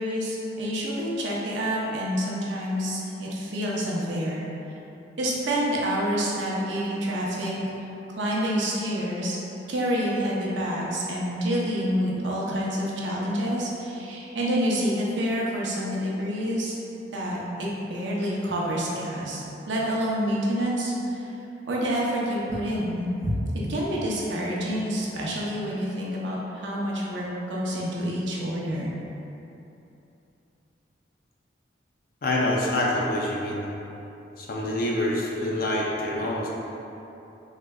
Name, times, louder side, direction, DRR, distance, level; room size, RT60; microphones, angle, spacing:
voice 1, 0.0-4.5 5.2-7.5 8.1-9.4 9.7-16.7 17.1-21.3 21.7-23.4 23.7-28.9, equal, 85° right, -4 dB, 0.7 m, -28 dB
voice 2, 32.2-33.7 34.4-36.5, left 1 dB, 55° left, -3 dB, 0.5 m, -26 dB
3.7 x 3.3 x 2.2 m, 2.9 s
head